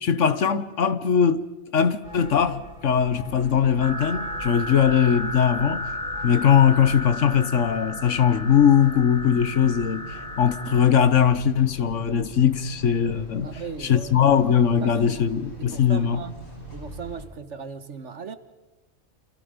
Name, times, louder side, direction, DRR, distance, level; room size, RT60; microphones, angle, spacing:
voice 1, 0.0-1.5 1.7-5.8 6.2-13.5 13.8-16.2, left 8 dB, 60° left, 1.3 m, -20 dB
sound 1, 2.0-7.1, left 1 dB, 85° right, 5.6 m, -44 dB
sound 2, 3.3-17.2, right 1 dB, 85° left, 6.9 m, -42 dB
sound 3, 3.8-10.9, left 1 dB, 5° left, 5.0 m, -34 dB
voice 2, 13.4-14.3 14.8-15.2 15.6-16.3 16.7-18.4, right 5 dB, 55° right, 1.6 m, -37 dB
28.5 x 28.0 x 5.2 m
omnidirectional pair, 1.5 m